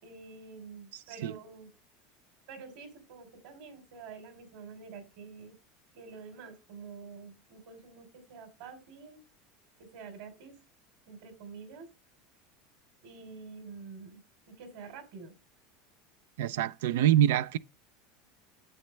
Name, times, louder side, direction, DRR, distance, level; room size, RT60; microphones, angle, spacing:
voice 1, 0.0-1.7 2.5-5.6 5.9-9.2 9.8-10.6 11.1-11.9 13.0-14.2 14.5-15.3, right 5 dB, 70° right, 3.3 m, -47 dB
voice 2, 16.4-17.6, right 11 dB, 85° right, 0.4 m, -25 dB
9.9 x 7.7 x 3.2 m
supercardioid pair, 125°, 0 cm